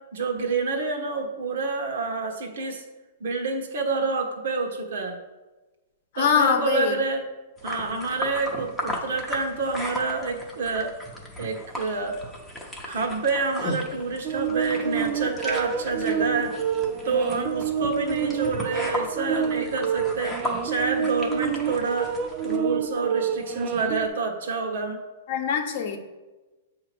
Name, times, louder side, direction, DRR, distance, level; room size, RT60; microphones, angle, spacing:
voice 1, 0.1-2.8 3.2-5.2 6.2-7.3 7.6-10.9 11.4-12.2 12.9-16.6 17.0-20.4 20.6-22.1 22.4-25.0, right 4 dB, 65° right, 3 dB, 1.2 m, -28 dB
voice 2, 6.1-6.9 25.3-26.0, left 7 dB, 45° left, 5 dB, 0.8 m, -23 dB
sound 1, 7.6-22.6, left 1 dB, ahead, 0.7 m, -36 dB
sound 2, 14.2-24.1, right 7 dB, 25° right, 0.3 m, -28 dB
7.9 x 2.9 x 6.0 m, 1.2 s
supercardioid pair, 175°, 0 cm